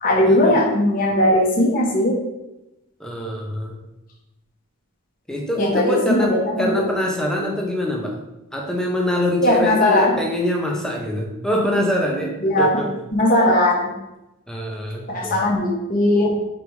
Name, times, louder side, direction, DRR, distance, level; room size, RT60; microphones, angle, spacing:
voice 1, 0.0-2.1 5.6-6.7 9.4-10.2 12.4-12.8 13.1-13.9 15.1-16.3, left 1 dB, 40° left, -3 dB, 1.5 m, -18 dB
voice 2, 3.0-3.8 5.3-8.2 8.5-13.0 14.5-15.4, left 1 dB, 5° left, -1 dB, 1.0 m, -24 dB
5.2 x 4.7 x 4.8 m, 0.95 s
head